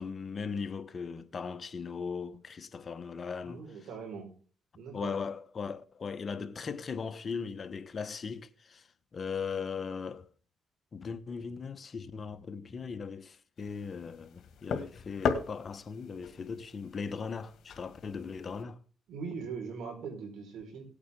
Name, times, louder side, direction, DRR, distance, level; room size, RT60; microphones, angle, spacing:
voice 1, 0.0-3.7 4.9-10.3 10.9-18.8, left 5 dB, 40° left, 1.0 m, -38 dB
voice 2, 3.4-4.3 4.8-5.2 19.1-20.8, right 5 dB, 75° right, 4.6 m, -41 dB
sound 1, 13.6-18.6, left 6 dB, 65° left, 1.9 m, -38 dB
18.5 x 8.6 x 3.7 m
cardioid pair, 90°, 0 cm